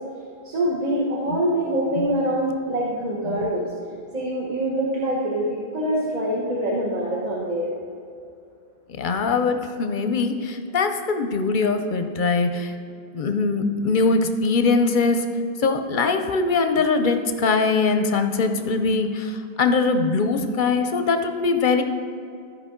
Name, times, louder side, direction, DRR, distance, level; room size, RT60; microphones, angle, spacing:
voice 1, 0.4-3.7 4.1-7.7, right 1 dB, 40° right, -3 dB, 1.1 m, -24 dB
voice 2, 9.0-12.7 13.1-15.2 15.6-21.8, left 4 dB, 55° left, 7 dB, 0.7 m, -22 dB
13.0 x 5.1 x 3.7 m, 2.5 s
omnidirectional pair, 1.1 m